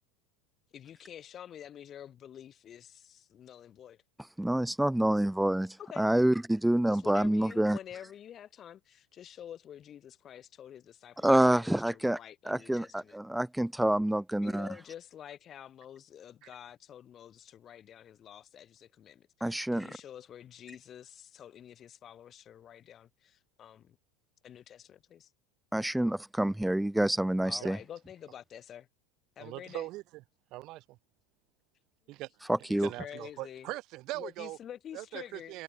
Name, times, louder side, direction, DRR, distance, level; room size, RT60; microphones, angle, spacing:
voice 1, 0.7-4.0 5.8-6.1 6.9-13.2 14.4-24.0 24.4-25.3 27.4-28.9 29.4-29.9 32.7-33.7 34.1-35.5, left 10 dB, 35° left, 7.2 m, -48 dB
voice 2, 4.4-7.8 11.2-12.2 12.5-14.7 19.4-20.0 25.7-27.8 32.5-32.9, right 1 dB, 5° right, 0.4 m, -27 dB
voice 3, 29.4-30.0 30.5-31.0 32.1-32.3 32.7-34.6 34.9-35.6, right 19 dB, 55° right, 7.3 m, -40 dB
supercardioid pair, 130°, 0 cm